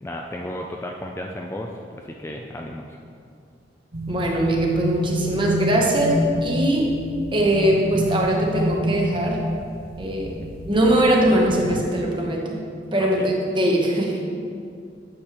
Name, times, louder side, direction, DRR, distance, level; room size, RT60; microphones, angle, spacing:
voice 1, 0.0-3.0 10.4-10.5 13.0-13.3, left 1 dB, 15° left, 1 dB, 0.3 m, -34 dB
sound 1, 3.9-11.9, equal, 55° right, 0.6 m, -29 dB
voice 2, 4.1-6.9 7.3-9.4 10.0-10.4 10.7-12.6 12.9-14.2, right 1 dB, 25° right, -1 dB, 1.0 m, -21 dB
8.6 x 6.5 x 3.0 m, 2.3 s
head